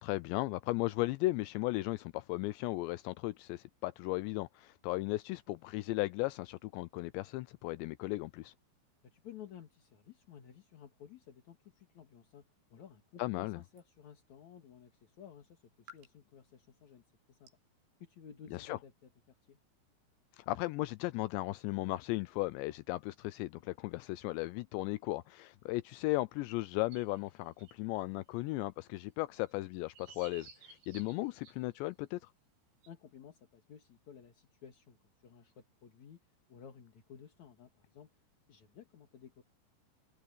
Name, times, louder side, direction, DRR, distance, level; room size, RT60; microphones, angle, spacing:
voice 1, 0.0-8.5 13.2-13.6 18.7-18.8 20.4-32.2, left 20 dB, 85° left, 2.6 m, -36 dB
voice 2, 9.0-17.5 18.0-19.6 32.9-35.0 35.2-38.1 38.5-39.4, left 8 dB, 50° left, 2.6 m, -54 dB
sound 1, 12.3-18.6, left 2 dB, 85° right, 10.5 m, -65 dB
sound 2, 26.9-27.8 28.4-28.5 29.5-31.8 32.8-32.9, right 5 dB, 70° right, 6.8 m, -56 dB
omnidirectional pair, 5.5 m